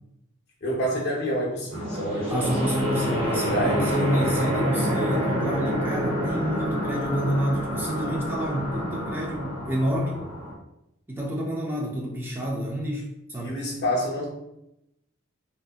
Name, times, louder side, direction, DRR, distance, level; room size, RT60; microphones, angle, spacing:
voice 1, 0.6-2.6 3.3-3.9 13.4-14.3, equal, 50° left, -3 dB, 0.6 m, -28 dB
sound 1, 1.7-10.5, equal, 70° right, 1.0 m, -28 dB
voice 2, 2.3-10.2 11.1-13.0 13.3-13.6, equal, 10° right, -2 dB, 0.4 m, -28 dB
2.6 x 2.5 x 2.3 m, 0.85 s
head